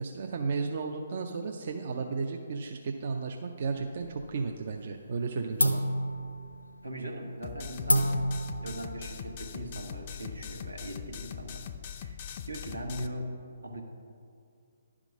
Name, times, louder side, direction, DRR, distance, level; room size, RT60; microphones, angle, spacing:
voice 1, 0.0-5.8, right 4 dB, 50° right, 3 dB, 0.5 m, -34 dB
sound 1, 3.6-4.5 4.8-5.2 5.6-10.7, equal, 85° left, 0.6 m, -31 dB
voice 2, 6.8-8.3 8.6-11.6 12.0-12.2 12.5-13.8, right 1 dB, 85° right, 2 dB, 1.2 m, -39 dB
sound 2, 7.4-13.1, left 8 dB, 40° left, 0.4 m, -41 dB
11.0 x 3.7 x 6.0 m, 2.3 s
figure-of-eight pair, 135°, 0 cm